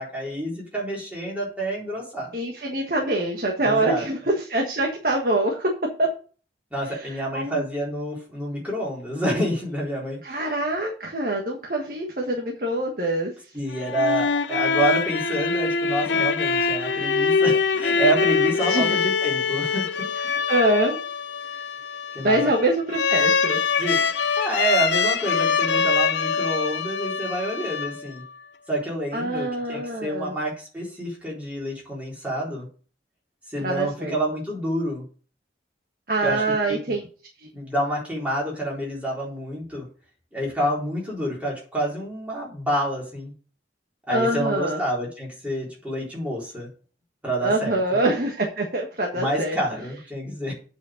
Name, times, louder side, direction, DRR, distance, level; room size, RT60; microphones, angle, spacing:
voice 1, 0.0-2.3 3.6-4.0 6.7-10.5 13.5-20.1 22.1-22.4 23.8-28.2 28.7-32.7 33.5-35.0 36.2-36.4 36.7-36.9 37.5-39.9 40.3-43.3 44.1-46.7 47.2-48.0 49.1-50.5, right 1 dB, 10° right, -5 dB, 4.0 m, -28 dB
voice 2, 2.3-5.7 6.0-6.1 7.0-7.6 10.2-13.3 18.7-19.0 20.2-21.0 22.2-23.6 29.1-30.3 33.6-34.2 36.1-37.0 37.4-37.5 44.1-44.8 47.4-49.6, right 1 dB, 50° right, 0 dB, 1.5 m, -24 dB
sound 1, 13.7-28.3, left 5 dB, 80° left, 0.8 m, -24 dB
8.3 x 5.1 x 6.5 m, 0.39 s
head